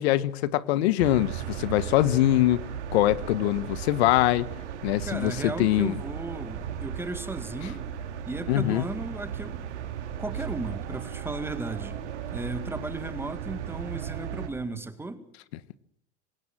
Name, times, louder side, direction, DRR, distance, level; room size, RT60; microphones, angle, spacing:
voice 1, 0.0-2.6 2.9-4.5 4.8-6.0 8.5-8.8, left 14 dB, 65° left, 1.3 m, -23 dB
sound 1, 1.0-14.5, right 8 dB, 90° right, 4.6 m, -36 dB
voice 2, 5.0-7.9 8.3-9.7 10.2-12.0 12.3-15.2, right 2 dB, 5° right, 2.1 m, -35 dB
27.0 x 16.5 x 7.5 m
supercardioid pair, 140°, 34 cm